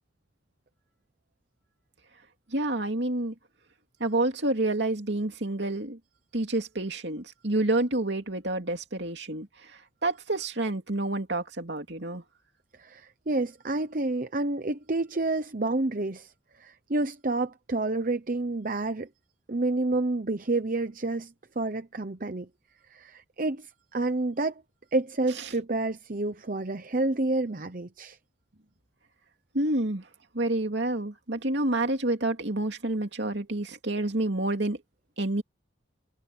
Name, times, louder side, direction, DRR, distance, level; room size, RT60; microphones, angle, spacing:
voice 1, 2.5-3.3 4.0-6.0 6.3-9.5 10.0-12.2 29.5-30.0 30.3-34.8 35.2-35.4, right 2 dB, 60° right, 2.8 m, -28 dB
voice 2, 12.8-16.3 16.6-19.1 19.5-22.5 22.9-24.6 24.9-28.2, right 2 dB, 45° right, 0.9 m, -29 dB
head